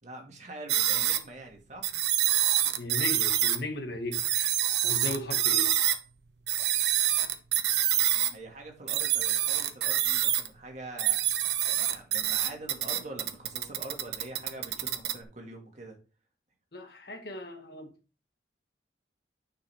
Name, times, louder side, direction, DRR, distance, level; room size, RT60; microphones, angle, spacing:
voice 1, 0.0-1.9 8.3-11.2 11.7-16.0, right 2 dB, 40° right, 2.1 m, -44 dB
sound 1, 0.7-1.2 1.8-3.6 4.1-6.0 6.5-8.3 8.9-10.5 11.0-15.2, right 12 dB, 70° right, 0.9 m, -26 dB
voice 2, 2.8-4.5 4.8-5.7 16.7-17.9, left 2 dB, 60° left, 1.6 m, -37 dB
9.4 x 6.1 x 3.5 m
head